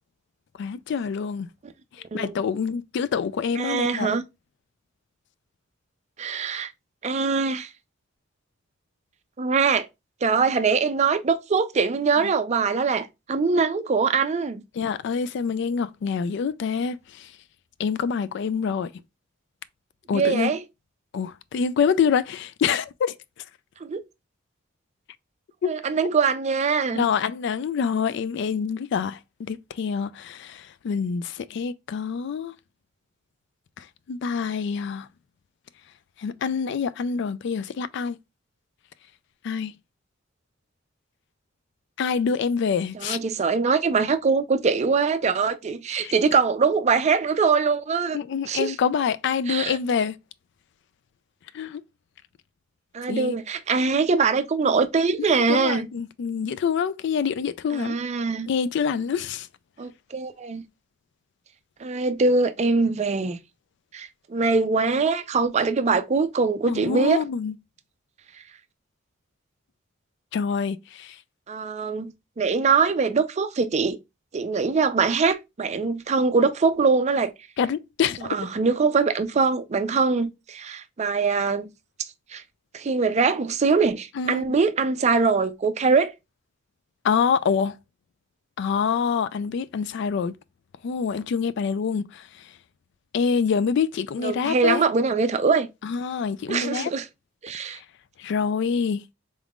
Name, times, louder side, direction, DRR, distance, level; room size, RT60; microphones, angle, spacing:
voice 1, 0.6-1.5 2.1-4.2 14.7-17.3 17.8-18.9 20.1-20.5 21.1-23.1 25.6-25.7 26.9-32.5 33.8-35.1 36.2-38.2 39.4-39.7 42.0-43.2 45.9-46.1 48.1-50.2 51.5-51.8 53.1-53.4 55.3-58.0 58.5-59.5 66.7-67.5 70.3-71.2 77.6-78.4 84.2-84.6 87.0-87.7 88.6-90.3 90.8-92.3 93.1-94.8 95.8-96.9 98.2-99.0, left 6 dB, 65° left, 0.3 m, -26 dB
voice 2, 3.6-4.2 6.2-6.7 7.0-7.7 9.4-9.9 10.2-14.6 20.1-20.6 23.8-24.0 25.6-27.1 42.9-48.2 48.5-48.7 49.5-49.8 52.9-55.9 57.7-58.5 59.8-60.6 61.8-63.4 63.9-67.2 71.5-74.0 74.3-77.3 78.3-81.7 82.3-82.4 82.7-86.1 94.2-95.7 96.5-97.1 97.4-97.8, right 4 dB, 35° right, 0.4 m, -23 dB
3.8 x 3.5 x 2.3 m
head